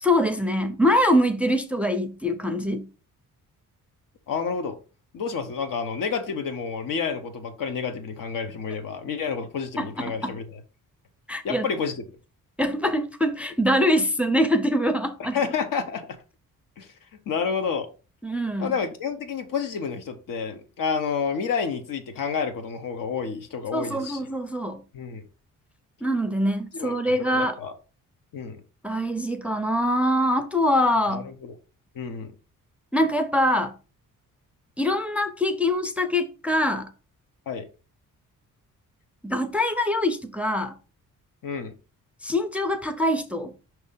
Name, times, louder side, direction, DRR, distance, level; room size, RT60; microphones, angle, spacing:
voice 1, 0.0-2.9 9.8-10.4 11.3-11.7 12.6-15.4 18.2-18.7 23.7-24.8 26.0-27.6 28.8-31.3 32.9-33.7 34.8-36.9 39.2-40.8 42.2-43.5, left 1 dB, 5° right, 0.4 m, -24 dB
voice 2, 4.3-4.8 5.1-10.6 11.4-12.0 15.3-16.2 16.8-16.9 17.3-17.9 18.6-24.2 24.9-25.2 26.7-27.7 28.3-28.6 31.1-31.5 31.9-32.3 37.5-37.7 41.4-41.7, left 6 dB, 75° left, 1.1 m, -29 dB
5.6 x 3.2 x 5.5 m
wide cardioid pair, 145°, 33 cm